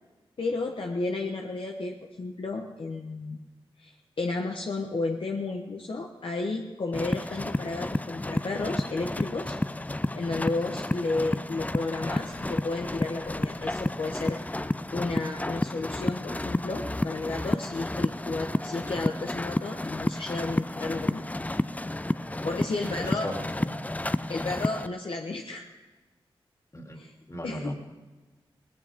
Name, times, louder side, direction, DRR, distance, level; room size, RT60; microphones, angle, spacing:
voice 1, 0.4-3.4 3.8-9.6 10.1-14.4 14.9-21.3 22.4-23.3 24.3-25.7 26.9-27.1 27.4-27.7, left 3 dB, 65° left, 1 dB, 1.2 m, -32 dB
sound 1, 6.9-24.9, left 1 dB, 15° left, 0.5 m, -31 dB
voice 2, 23.0-23.8 26.7-27.0 27.3-27.7, left 1 dB, 30° left, 1 dB, 3.1 m, -36 dB
18.5 x 15.0 x 3.7 m, 1.2 s
cardioid pair, 40°, 10 cm